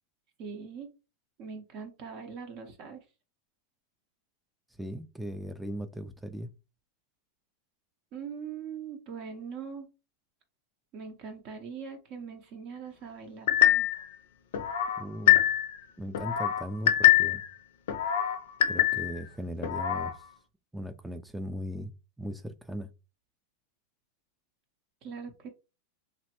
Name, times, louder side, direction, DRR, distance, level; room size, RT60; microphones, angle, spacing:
voice 1, 0.4-0.9 1.4-3.0 8.1-9.9 10.9-14.0 25.0-25.5, right 6 dB, 45° right, 0.6 m, -41 dB
voice 2, 4.8-6.5 15.0-15.5 16.0-17.4 18.7-20.2 20.7-21.9 22.2-22.9, equal, 5° right, 0.3 m, -38 dB
sound 1, 13.5-14.1 14.5-15.8 16.1-17.5 17.9-19.2 19.6-20.1, left 12 dB, 75° left, 0.4 m, -24 dB
3.1 x 2.1 x 2.9 m
supercardioid pair, 135°, 0 cm